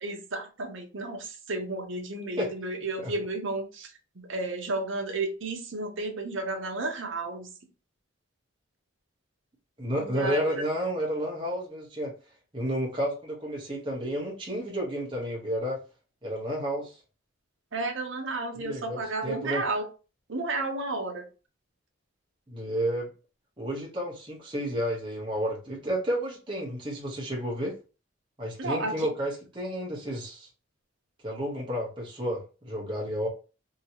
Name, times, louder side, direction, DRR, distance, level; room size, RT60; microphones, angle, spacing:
voice 1, 0.0-7.5 10.0-10.6 17.7-19.9 20.3-21.3 28.6-29.1, right 2 dB, 65° right, 0.8 m, -32 dB
voice 2, 9.8-12.1 12.5-15.8 16.2-17.0 18.6-19.6 22.5-23.1 23.6-27.8 28.4-30.5 31.2-33.3, equal, 25° right, 1.0 m, -31 dB
2.9 x 2.8 x 2.8 m
head